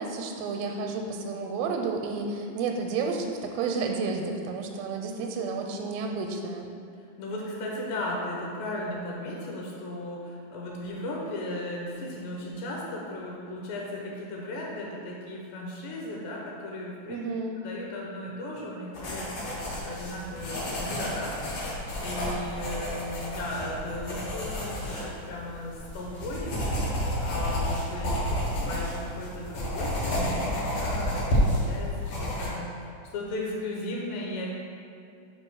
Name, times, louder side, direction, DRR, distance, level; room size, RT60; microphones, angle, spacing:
voice 1, 0.0-6.7 17.1-17.6, right 4 dB, 90° right, 3 dB, 2.4 m, -31 dB
voice 2, 7.2-17.2 17.6-26.6 27.2-34.5, left 1 dB, 85° left, -2 dB, 2.6 m, -36 dB
sound 1, 18.9-32.5, equal, 65° left, 1.6 m, -30 dB
5.2 x 4.7 x 5.5 m, 2.5 s
omnidirectional pair, 4.2 m